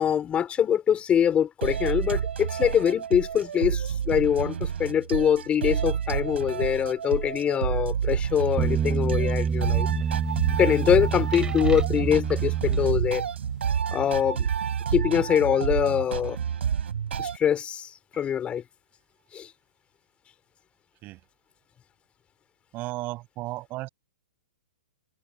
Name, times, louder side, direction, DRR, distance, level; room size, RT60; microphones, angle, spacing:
voice 1, 0.0-9.9 10.6-13.2 13.9-14.5 14.9-16.4 17.2-18.6 19.3-19.5, left 9 dB, 20° left, 4.4 m, -24 dB
sound 1, 1.6-17.4, right 8 dB, 80° right, 4.7 m, -29 dB
sound 2, 8.6-13.5, right 6 dB, 15° right, 3.6 m, -28 dB
voice 2, 22.7-23.9, right 19 dB, 30° right, 5.7 m, -35 dB
hypercardioid pair, 140°, 6 cm